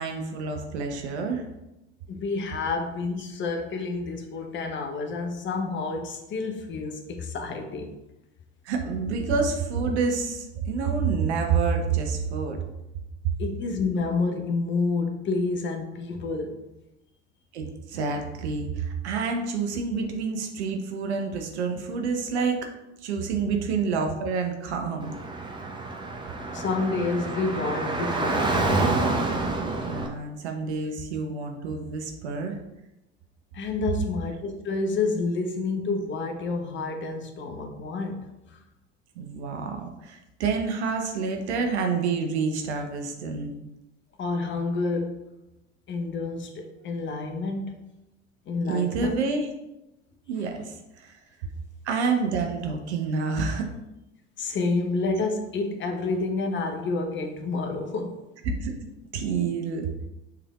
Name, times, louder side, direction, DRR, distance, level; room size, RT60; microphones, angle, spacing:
voice 1, 0.0-1.5 8.6-12.6 17.5-22.7 23.0-25.1 29.8-32.6 39.2-43.5 48.7-49.5 50.3-51.2 51.8-53.7 58.6-58.9 59.1-59.9, right 5 dB, 70° right, 4 dB, 0.8 m, -28 dB
voice 2, 2.1-7.9 13.4-16.6 26.5-29.0 33.5-38.6 44.2-45.2 45.9-47.9 48.5-49.2 54.4-58.2, left 3 dB, 35° left, 4 dB, 0.8 m, -29 dB
Car / Traffic noise roadway noise, 25.0-30.1, right 2 dB, 15° right, 0.8 m, -28 dB
6.4 x 3.4 x 2.4 m, 0.95 s
figure-of-eight pair, 65°, 34 cm